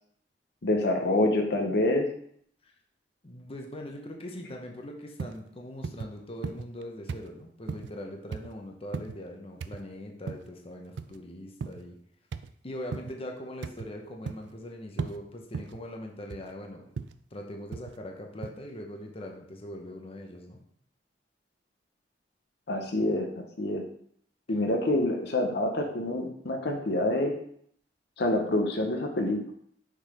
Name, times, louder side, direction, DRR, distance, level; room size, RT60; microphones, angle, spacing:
voice 1, 0.6-2.1 22.7-23.8 24.5-27.3 28.2-29.5, left 1 dB, 65° left, 3 dB, 0.9 m, -27 dB
voice 2, 3.2-12.0 12.6-16.9 17.3-20.6, left 1 dB, 35° left, 2 dB, 0.9 m, -41 dB
sound 1, 5.2-5.4 5.8-6.1 6.4-6.8 7.1-7.3 7.7-7.9 8.3-8.5 8.9-9.2 9.6-9.8 10.3-10.5 11.0-11.2 11.6-11.9 12.3-12.5 12.9-13.1 13.6-13.9 14.3-14.6 15.0-15.2 15.5-15.8 16.3-16.5 17.0-17.2 17.7-18.0 18.4-18.5, right 5 dB, 80° right, 0.4 m, -36 dB
6.6 x 4.0 x 4.9 m, 0.64 s
head